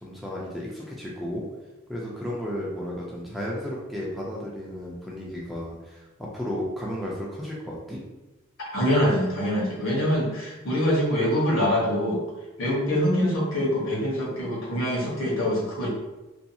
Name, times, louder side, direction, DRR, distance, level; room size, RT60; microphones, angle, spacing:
voice 1, 0.0-1.5 1.9-8.0, equal, ahead, -5 dB, 0.4 m, -33 dB
voice 2, 8.7-12.2 12.6-15.9, equal, 70° left, -5 dB, 1.0 m, -24 dB
2.6 x 2.3 x 2.7 m, 1.1 s
head